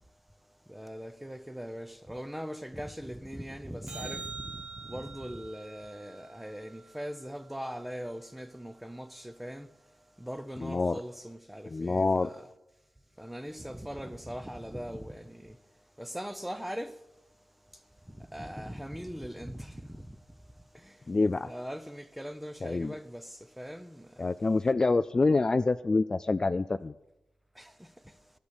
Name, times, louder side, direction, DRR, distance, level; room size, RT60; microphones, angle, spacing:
voice 1, 0.7-4.6 4.9-9.7 10.2-12.5 13.2-15.5 16.0-16.9 18.2-20.1 21.4-23.2 23.6-24.1 27.6-27.7, equal, 5° right, 0.8 m, -40 dB
sound 1, 3.9-8.3 14.9-15.0, right 4 dB, 60° right, 0.5 m, -46 dB
voice 2, 10.6-11.0 11.7-12.3 21.1-21.5 22.6-22.9 24.2-26.9, left 3 dB, 35° left, 0.3 m, -26 dB
11.5 x 6.9 x 8.2 m
cardioid pair, 75°, 2 cm